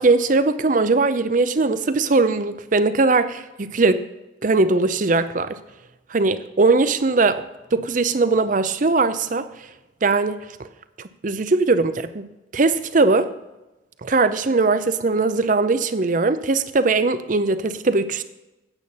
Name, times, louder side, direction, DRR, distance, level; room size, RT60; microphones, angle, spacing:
voice 1, 0.0-4.0 4.4-5.5 6.1-7.4 7.7-9.5 10.0-10.4 11.2-12.3 12.5-13.3 14.0-18.2, right 3 dB, 40° right, 12 dB, 0.6 m, -20 dB
9.0 x 8.7 x 5.5 m, 1.0 s
head